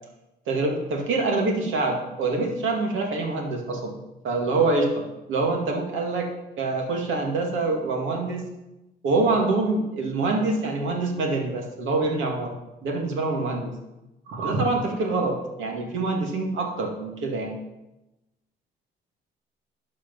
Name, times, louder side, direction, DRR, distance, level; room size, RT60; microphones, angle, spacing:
voice 1, 0.5-4.0 4.2-5.0 5.3-6.3 6.6-8.4 9.0-12.5 12.8-13.7 14.3-17.5, right 3 dB, 80° right, 1 dB, 2.2 m, -25 dB
11.5 x 5.1 x 5.5 m, 0.97 s
cardioid pair, 90°, 20 cm